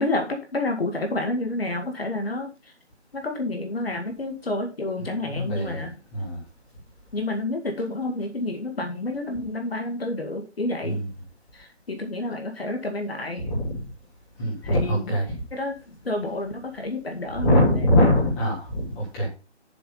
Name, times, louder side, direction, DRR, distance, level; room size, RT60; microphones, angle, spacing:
voice 1, 0.0-2.5 3.1-5.9 7.1-11.0 11.5-13.5 14.6-15.1 15.5-17.8, left 2 dB, 60° left, 4 dB, 2.2 m, -29 dB
voice 2, 5.3-6.4 10.8-11.1 13.4-13.9 14.4-15.3 17.3-19.3, left 1 dB, 5° left, -5 dB, 1.0 m, -23 dB
7.1 x 5.9 x 5.6 m, 0.31 s
figure-of-eight pair, 160°, 34 cm